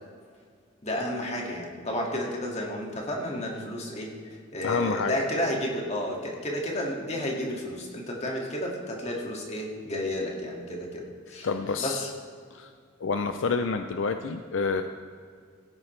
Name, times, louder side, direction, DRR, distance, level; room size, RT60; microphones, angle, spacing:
voice 1, 0.8-11.5 11.8-12.1, left 1 dB, 35° left, -1 dB, 2.1 m, -32 dB
voice 2, 4.6-5.1 11.4-12.1 12.5-12.7 13.0-14.8, left 4 dB, 70° left, 7 dB, 0.5 m, -28 dB
17.0 x 9.7 x 3.3 m, 2.1 s
head